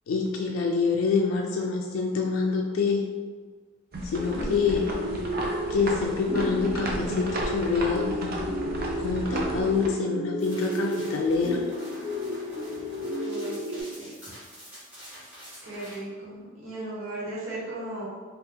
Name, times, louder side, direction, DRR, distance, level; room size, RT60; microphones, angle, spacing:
voice 1, 0.1-3.0 4.1-4.9 5.7-8.5 9.0-11.6, left 5 dB, 85° left, 1 dB, 0.3 m, -26 dB
sound 1, 3.9-9.9, right 1 dB, 50° right, 0.5 m, -34 dB
sound 2, 4.1-13.8, equal, 30° right, 0.9 m, -32 dB
voice 2, 4.3-4.9 13.1-14.3 15.6-18.1, right 1 dB, 80° right, -8 dB, 1.2 m, -37 dB
sound 3, 10.4-15.9, equal, 10° right, 1.0 m, -46 dB
2.8 x 2.4 x 3.4 m, 1.5 s
head